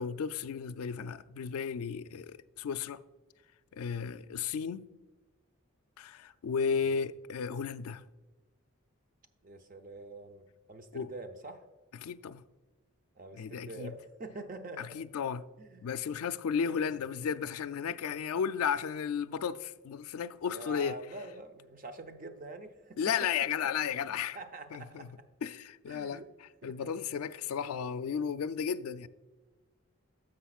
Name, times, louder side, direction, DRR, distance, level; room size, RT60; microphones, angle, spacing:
voice 1, 0.0-3.0 3.7-4.9 6.0-8.0 10.9-11.1 12.0-12.4 13.4-13.9 14.8-15.5 15.8-21.0 23.0-24.4 24.7-25.1 25.4-29.1, left 7 dB, 80° left, 0.4 m, -34 dB
voice 2, 6.7-7.1 9.4-11.7 13.2-15.0 15.6-15.9 16.6-17.0 20.4-23.0 24.3-25.1 25.9-26.3 26.6-27.0, right 2 dB, 40° right, 0.6 m, -46 dB
10.0 x 7.5 x 2.4 m
head